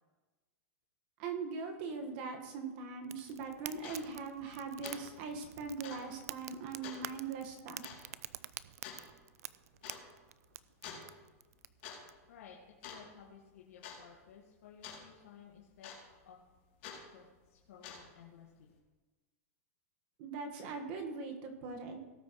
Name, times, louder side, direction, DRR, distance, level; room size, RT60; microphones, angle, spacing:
voice 1, 1.2-7.8 20.2-22.0, right 4 dB, 40° right, 4 dB, 1.5 m, -41 dB
Fire, 3.0-12.1, right 11 dB, 85° right, 0.4 m, -49 dB
sound 1, 3.3-3.4 3.8-4.0 4.4-4.6 4.8-5.0 5.3-5.4 5.8-6.1 6.8-7.1 7.8-8.0 8.8-9.0 9.8-10.0 10.8-11.1 11.6-12.0 12.3-12.5 12.8-13.3 13.8-14.0 14.8-15.0 15.8-16.2 16.8-17.0 17.7-18.2, left 7 dB, 45° left, 2.8 m, -47 dB
voice 2, 12.3-15.9 16.2-16.4 17.1-18.7, left 7 dB, 75° left, -3 dB, 1.7 m, -56 dB
18.0 x 8.1 x 3.1 m, 1.2 s
supercardioid pair, 170°, 8 cm